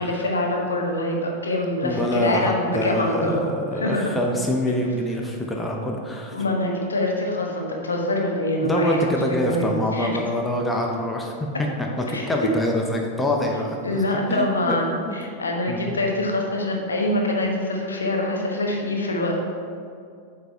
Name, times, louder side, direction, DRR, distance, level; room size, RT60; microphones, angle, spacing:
voice 1, 0.0-3.4 3.8-4.1 6.3-10.1 12.1-12.3 13.8-19.4, left 1 dB, 75° left, 0 dB, 1.1 m, -25 dB
voice 2, 1.8-6.4 8.6-13.8 14.1-14.8 15.0-15.2 15.7-16.0, left 1 dB, 10° left, 0 dB, 0.8 m, -25 dB
8.0 x 4.1 x 4.5 m, 2.3 s
figure-of-eight pair, 90°, 0 cm